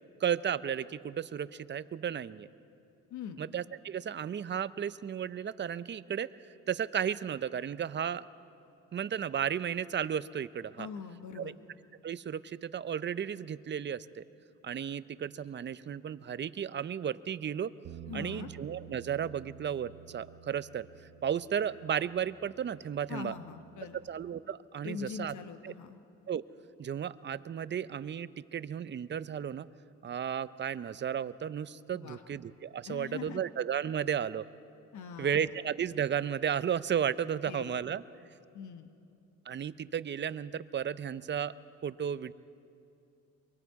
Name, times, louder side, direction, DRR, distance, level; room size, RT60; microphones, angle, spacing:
voice 1, 0.2-2.5 3.4-6.3 6.7-8.2 8.9-10.9 11.4-11.5 12.0-14.2 14.6-17.7 18.1-20.9 21.2-23.3 24.1-25.3 25.6-25.7 26.3-26.4 26.8-29.7 30.0-34.5 35.2-38.0 39.5-41.5 41.8-42.3, right 8 dB, 35° right, 16 dB, 0.6 m, -34 dB
voice 2, 10.8-11.5 18.0-18.5 23.1-24.0 24.8-26.0 31.9-32.2 32.8-33.4 34.9-35.5 37.4-37.8 38.5-38.9, left 7 dB, 75° left, 8 dB, 1.1 m, -42 dB
Bass guitar, 17.8-24.1, right 10 dB, 65° right, 1.0 m, -51 dB
23.5 x 23.5 x 4.7 m, 2.6 s
cardioid pair, 90°, 30 cm